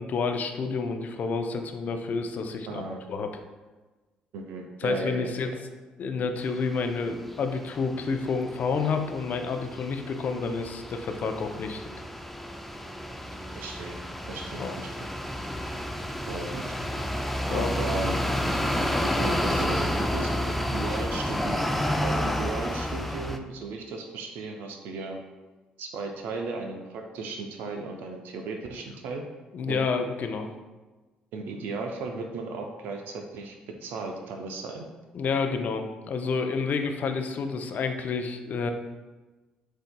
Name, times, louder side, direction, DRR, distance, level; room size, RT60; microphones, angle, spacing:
voice 1, 0.0-2.8 3.1-3.3 4.8-5.5 6.0-11.9 14.6-14.7 17.5-17.8 29.5-30.5 35.1-38.7, left 4 dB, 50° left, 5 dB, 0.5 m, -29 dB
voice 2, 2.7-3.0 4.3-5.3 13.5-14.0 14.3-14.9 16.3-16.6 17.5-18.2 19.0-21.7 22.0-25.2 25.8-29.2 29.7-29.8 31.3-34.9, right 3 dB, 70° right, 3 dB, 0.4 m, -36 dB
sound 1, 6.5-6.7 7.3-23.4, left 1 dB, 5° left, 0.4 m, -30 dB
7.5 x 2.7 x 2.2 m, 1.2 s
hypercardioid pair, 55°, 3 cm